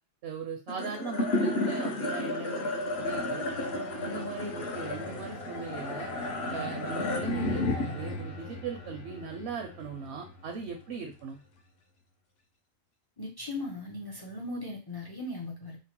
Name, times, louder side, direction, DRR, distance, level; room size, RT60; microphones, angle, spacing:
voice 1, 0.2-3.5 4.0-6.1 6.5-11.4, right 5 dB, 75° right, 3 dB, 0.8 m, -39 dB
sound 1, 0.7-11.2, left 2 dB, 70° left, 0.9 m, -33 dB
voice 2, 13.2-15.8, left 2 dB, 35° left, -1 dB, 0.4 m, -38 dB
2.9 x 2.1 x 2.9 m, 0.32 s
omnidirectional pair, 1.1 m